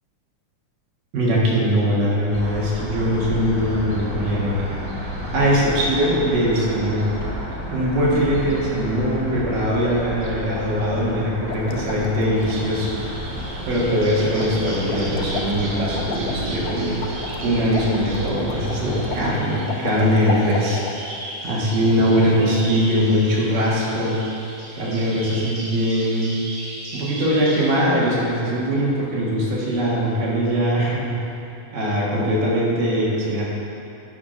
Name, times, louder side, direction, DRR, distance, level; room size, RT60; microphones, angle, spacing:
voice 1, 1.1-4.6 5.3-7.1 7.7-12.9 13.7-17.0 17.4-20.8 21.4-24.2 24.8-26.3 26.9-31.1 31.7-33.4, equal, 80° right, -5 dB, 3.4 m, -21 dB
sound 1, 2.3-19.3, equal, 35° right, 0.8 m, -31 dB
sound 2, 11.5-12.7 14.4-14.5 14.8-21.0, left 6 dB, 85° left, 2.2 m, -32 dB
Bird vocalization bird call bird song, 12.4-27.8, right 1 dB, 65° right, 3.3 m, -37 dB
10.0 x 5.7 x 5.2 m, 2.7 s
omnidirectional pair, 3.8 m